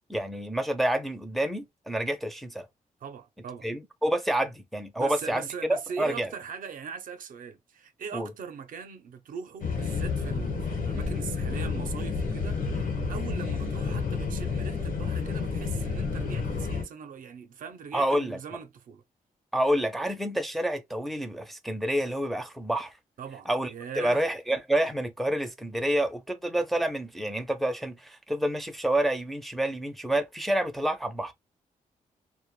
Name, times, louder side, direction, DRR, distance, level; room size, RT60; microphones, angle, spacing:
voice 1, 0.1-2.7 3.6-6.3 8.1-8.3 17.9-18.4 19.5-23.0 23.5-31.3, right 1 dB, ahead, 0.4 m, -28 dB
voice 2, 3.0-3.7 5.0-19.0 23.2-24.2, right 6 dB, 70° right, 0.5 m, -40 dB
sound 1, 9.6-16.8, left 4 dB, 70° left, 1.0 m, -30 dB
2.1 x 2.1 x 3.0 m
cardioid pair, 110°, 15 cm